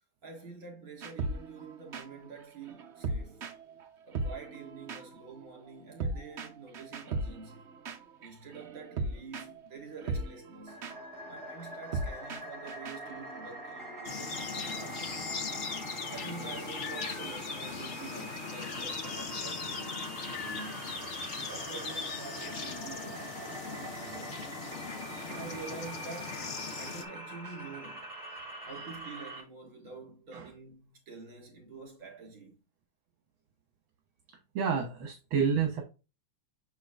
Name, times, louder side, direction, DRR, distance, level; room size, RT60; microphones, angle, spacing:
voice 1, 0.2-3.5 4.0-7.7 8.2-10.8 11.3-15.5 16.1-20.1 20.4-20.9 21.3-24.4 25.3-26.5 26.8-28.1 28.7-32.6, right 4 dB, 40° right, 3.7 m, -47 dB
sound 1, 1.0-15.7, right 2 dB, 85° right, 0.6 m, -39 dB
sound 2, 10.7-29.4, right 1 dB, 25° right, 2.9 m, -44 dB
sound 3, 14.0-27.0, left 5 dB, 75° left, 0.6 m, -39 dB
voice 2, 34.6-35.8, right 6 dB, 70° right, 1.9 m, -30 dB
6.8 x 6.0 x 2.5 m
omnidirectional pair, 2.4 m